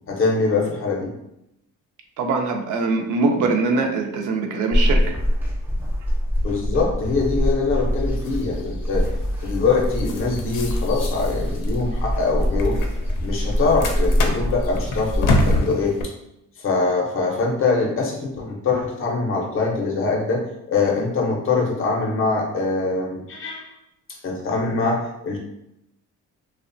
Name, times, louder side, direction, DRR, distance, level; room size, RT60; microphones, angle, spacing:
voice 1, 0.1-1.1 6.4-9.1 9.4-12.8 13.2-16.1 16.6-23.7 24.2-25.4, left 4 dB, 40° left, 0 dB, 0.5 m, -23 dB
voice 2, 2.2-5.0, right 3 dB, 70° right, 3 dB, 0.5 m, -22 dB
sound 1, 4.7-15.6, equal, 5° right, 0.3 m, -24 dB
sound 2, 8.0-16.0, left 2 dB, 90° left, 0.5 m, -29 dB
2.7 x 2.0 x 2.5 m, 0.83 s
cardioid pair, 160°, 32 cm